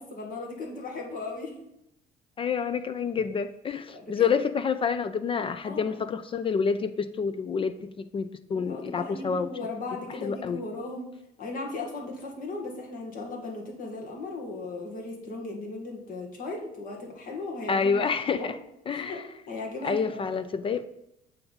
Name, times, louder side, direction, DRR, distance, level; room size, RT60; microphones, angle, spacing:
voice 1, 0.0-1.5 3.9-4.3 5.6-6.0 8.5-11.1 11.4-18.5 18.9-20.4, left 3 dB, 55° left, 0 dB, 1.8 m, -37 dB
voice 2, 2.4-9.5 10.2-10.6 17.7-18.5 18.9-19.2 19.8-20.8, left 6 dB, 30° left, 12 dB, 0.3 m, -28 dB
8.5 x 3.5 x 5.4 m, 0.83 s
cardioid pair, 110°, 17 cm